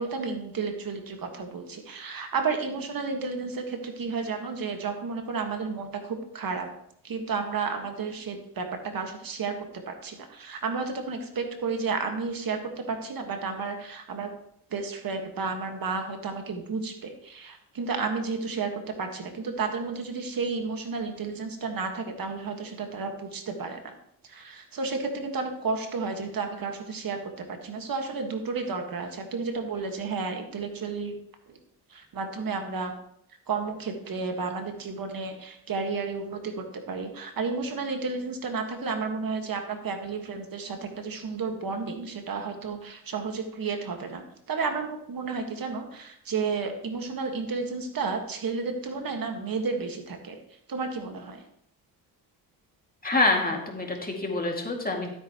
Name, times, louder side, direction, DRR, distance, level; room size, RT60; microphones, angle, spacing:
voice 1, 0.0-6.7 7.0-14.3 14.7-23.9 24.2-31.1 31.5-31.6 31.9-32.9 33.5-51.4, right 4 dB, 55° right, 4 dB, 1.7 m, -32 dB
voice 2, 53.0-55.1, left 2 dB, 20° left, 1 dB, 2.3 m, -26 dB
13.5 x 8.3 x 3.0 m, 0.71 s
cardioid pair, 75°, 40 cm